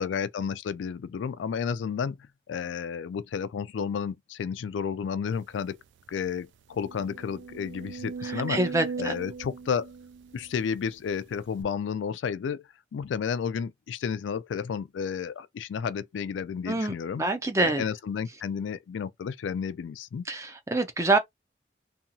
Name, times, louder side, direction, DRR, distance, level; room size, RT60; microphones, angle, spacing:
voice 1, 0.0-2.2 2.5-5.8 6.1-8.6 9.0-9.9 10.3-17.2 17.6-20.2, left 6 dB, 90° left, 0.3 m, -32 dB
sound 1, 5.6-5.7 6.1-6.2 6.7-10.9 11.6-11.7, right 5 dB, 80° right, 0.3 m, -39 dB
voice 2, 8.2-9.1 16.7-17.8 20.3-21.2, right 2 dB, 15° right, 0.5 m, -26 dB
2.8 x 2.3 x 2.7 m
head